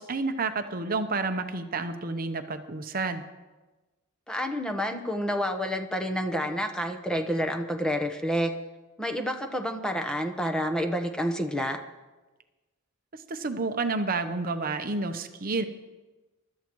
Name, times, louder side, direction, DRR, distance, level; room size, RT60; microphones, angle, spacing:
voice 1, 0.0-3.2 13.1-15.7, right 3 dB, 40° right, 8 dB, 0.8 m, -30 dB
voice 2, 4.3-8.5 9.0-11.8, equal, 5° left, 4 dB, 1.0 m, -29 dB
23.5 x 12.5 x 3.1 m, 1.2 s
head